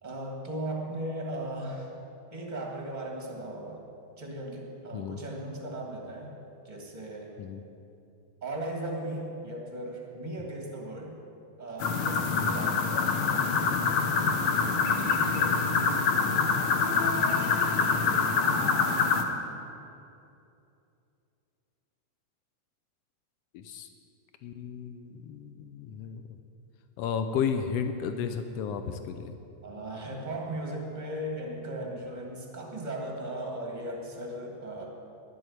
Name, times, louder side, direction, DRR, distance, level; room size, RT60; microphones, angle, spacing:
voice 1, 0.0-1.9 2.3-3.9 4.2-6.3 6.6-7.3 8.4-11.2 11.6-13.4 15.2-16.0 29.6-34.8, right 1 dB, 25° right, 0 dB, 0.9 m, -37 dB
sound 1, 11.8-19.2, left 4 dB, 70° left, 1.3 m, -25 dB
voice 2, 18.0-18.8 23.5-23.9 24.4-26.3 27.0-29.4, left 7 dB, 85° left, 8 dB, 1.4 m, -34 dB
11.5 x 7.8 x 9.2 m, 2.7 s
omnidirectional pair, 3.6 m